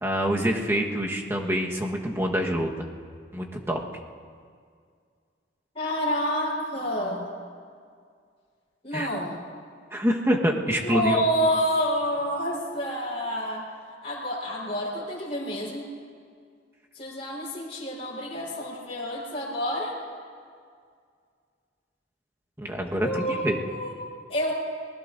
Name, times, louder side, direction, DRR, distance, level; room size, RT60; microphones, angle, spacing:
voice 1, 0.0-2.8 3.3-3.8 8.9-9.1 9.9-11.2 22.6-23.6, equal, 15° right, 0 dB, 1.3 m, -26 dB
voice 2, 5.7-7.3 8.8-9.4 10.8-13.6 14.0-15.9 17.0-19.9 23.0-24.5, equal, 35° left, -6 dB, 4.2 m, -28 dB
26.0 x 19.5 x 2.6 m, 2.1 s
head